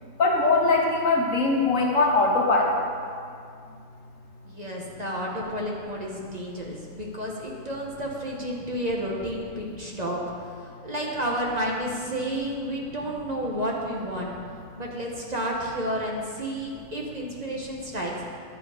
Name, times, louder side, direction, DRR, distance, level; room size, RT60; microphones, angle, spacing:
voice 1, 0.2-2.8, left 3 dB, 75° left, 1 dB, 1.6 m, -21 dB
voice 2, 4.4-14.3 14.8-18.1, equal, 35° right, -2 dB, 1.1 m, -31 dB
10.5 x 7.7 x 4.8 m, 2.3 s
omnidirectional pair, 1.4 m